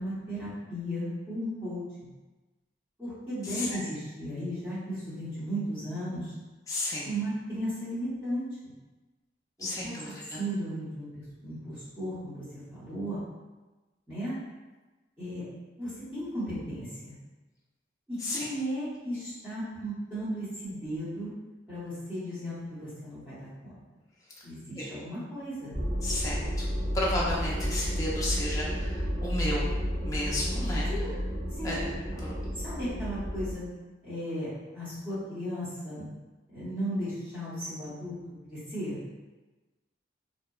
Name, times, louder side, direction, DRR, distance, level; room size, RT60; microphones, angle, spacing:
voice 1, 0.0-2.1 3.0-6.3 7.0-8.7 9.8-9.9 10.4-12.4 12.7-13.2 14.1-14.3 15.2-15.4 15.8-17.1 18.1-21.3 21.7-23.7 24.4-25.7 30.9-31.1 31.5-31.8 32.1-32.2 32.6-33.6 34.0-34.5 34.7-36.1 36.5-38.1 38.5-39.0, equal, 10° right, -14 dB, 0.9 m, -35 dB
voice 2, 6.7-7.1 9.6-10.4 18.2-18.5 24.8-24.9 26.0-26.7 26.9-29.6 30.0-30.9 31.6-31.9 32.2-32.3, left 1 dB, 15° left, -6 dB, 0.4 m, -32 dB
sound 1, 25.7-33.5, equal, 80° right, 0.9 m, -31 dB
2.7 x 2.0 x 2.3 m, 1.2 s
head